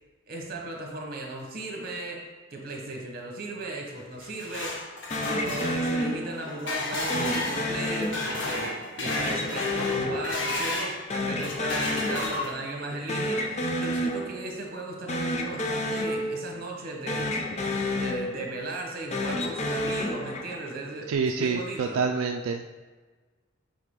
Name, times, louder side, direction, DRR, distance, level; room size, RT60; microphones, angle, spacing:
voice 1, 0.3-2.2 2.5-4.8 5.2-8.7 9.0-17.3 17.9-22.0, right 2 dB, 45° right, 0 dB, 1.1 m, -36 dB
sound 1, 4.0-11.0 11.4-12.8, left 2 dB, 60° left, 0.9 m, -32 dB
sound 2, 5.1-6.6 7.1-8.6 9.1-10.8 11.1-12.6 12.9-14.6 15.0-16.8 17.1-18.6 19.0-20.8, left 1 dB, 30° left, 0.5 m, -30 dB
voice 2, 21.1-22.7, right 5 dB, 80° right, 5 dB, 0.3 m, -27 dB
7.6 x 3.6 x 3.7 m, 1.3 s
head